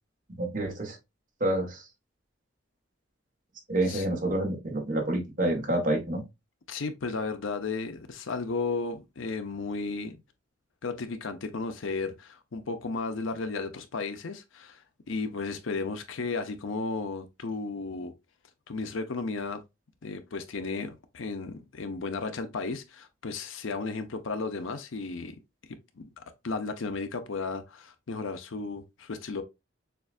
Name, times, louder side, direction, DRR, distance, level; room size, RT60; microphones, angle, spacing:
voice 1, 0.4-1.0 1.4-1.8 3.7-6.2, right 1 dB, 45° right, 1.2 m, -28 dB
voice 2, 6.7-10.2 10.8-14.8 15.1-18.1 18.7-19.6 20.0-25.4 26.0-29.4, left 4 dB, 75° left, 0.6 m, -34 dB
6.7 x 2.4 x 2.4 m
head